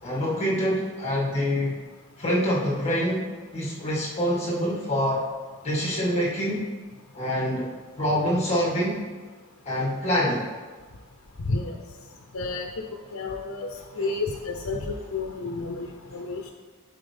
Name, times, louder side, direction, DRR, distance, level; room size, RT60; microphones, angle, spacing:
voice 1, 0.0-1.7 2.2-3.2 3.5-5.2 5.6-6.7 7.1-7.7 8.0-9.0 9.6-10.5, equal, 30° left, -5 dB, 2.0 m, -25 dB
voice 2, 11.4-11.8 12.3-12.7 13.1-13.7 13.9-16.5, left 3 dB, 80° left, 2 dB, 0.7 m, -30 dB
11.5 x 4.6 x 3.5 m, 1.4 s
head